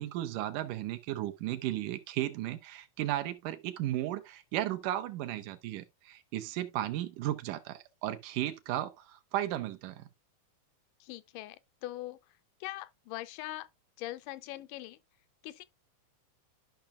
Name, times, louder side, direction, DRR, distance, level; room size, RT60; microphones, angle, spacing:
voice 1, 0.0-10.1, right 13 dB, 85° right, 2.4 m, -35 dB
voice 2, 11.0-12.2 12.6-13.7 14.0-15.0 15.4-15.6, left 16 dB, 85° left, 2.2 m, -41 dB
12.0 x 5.8 x 2.3 m
omnidirectional pair, 3.7 m